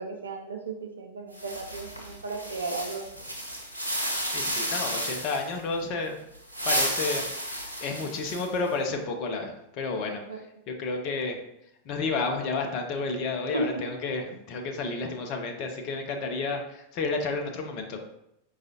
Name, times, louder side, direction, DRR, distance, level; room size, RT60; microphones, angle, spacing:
voice 1, 0.0-3.1 10.3-10.4 13.5-13.8, right 2 dB, 70° right, 3 dB, 0.5 m, -34 dB
sound 1, 1.3-5.5 6.3-8.7, equal, 90° left, 0.6 m, -32 dB
voice 2, 4.3-6.2 6.6-7.3 7.8-11.4 11.9-18.0, left 3 dB, 40° left, 3 dB, 0.5 m, -31 dB
4.8 x 2.4 x 2.7 m, 0.80 s
figure-of-eight pair, 90°, 0 cm